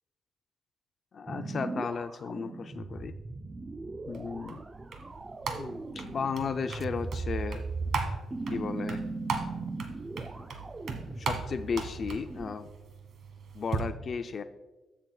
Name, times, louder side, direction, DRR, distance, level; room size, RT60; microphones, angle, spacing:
voice 1, 1.1-3.2 4.1-4.6 5.6-7.7 8.5-9.0 10.4-10.5 11.2-12.7 13.5-14.4, left 5 dB, 45° left, 9 dB, 0.4 m, -35 dB
sound 1, 1.3-12.6, right 3 dB, 25° right, 0.4 m, -38 dB
sound 2, 4.1-13.8, right 4 dB, 60° right, 1.5 m, -39 dB
15.5 x 6.3 x 2.3 m, 1.2 s
cardioid pair, 90°, 0 cm